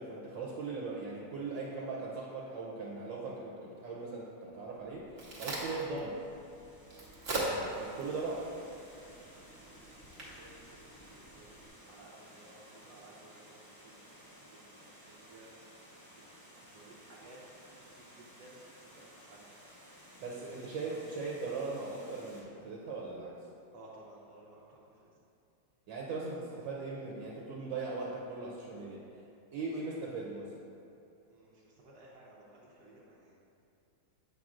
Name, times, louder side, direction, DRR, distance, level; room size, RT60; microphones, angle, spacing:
voice 1, 0.0-5.1 5.4-6.2 7.7-8.5 20.2-23.3 25.9-29.1 29.5-30.5, right 3 dB, 85° right, -4 dB, 1.4 m, -39 dB
Crack, 4.8-11.7, right 2 dB, 45° right, 1.0 m, -41 dB
Water, 5.9-22.4, equal, 15° left, 1.0 m, -56 dB
voice 2, 7.4-8.4 10.2-15.5 16.1-16.2 16.7-17.4 18.0-19.5 20.3-20.9 23.7-25.1 26.5-26.6 29.7-29.8 31.3-33.4, right 2 dB, 65° right, -5 dB, 1.2 m, -57 dB
7.5 x 5.8 x 2.4 m, 2.7 s
omnidirectional pair, 2.0 m